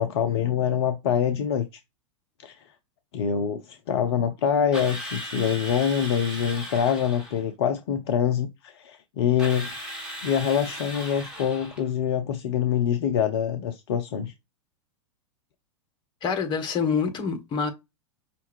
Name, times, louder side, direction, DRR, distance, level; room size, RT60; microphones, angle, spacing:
voice 1, 0.0-1.7 2.4-2.7 3.1-9.7 10.2-14.3, left 8 dB, 55° left, 0.6 m, -25 dB
Drill, 4.7-7.4 9.4-11.9, equal, 5° right, 2.1 m, -37 dB
voice 2, 16.2-17.7, left 6 dB, 30° left, 1.2 m, -26 dB
5.4 x 2.5 x 3.1 m
figure-of-eight pair, 95°, 16 cm